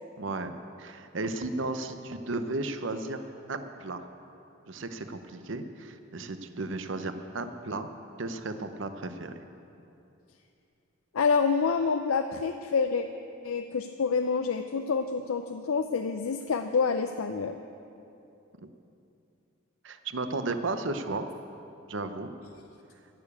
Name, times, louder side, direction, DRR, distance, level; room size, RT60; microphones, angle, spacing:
voice 1, 0.2-0.5 0.8-3.2 3.5-4.0 4.7-7.9 8.2-9.3 18.6-18.7 19.8-21.3 21.9-22.3, right 2 dB, 65° right, 9 dB, 0.8 m, -34 dB
voice 2, 11.1-13.1 13.4-17.6, left 5 dB, 90° left, 7 dB, 0.5 m, -27 dB
15.0 x 6.9 x 8.4 m, 2.7 s
head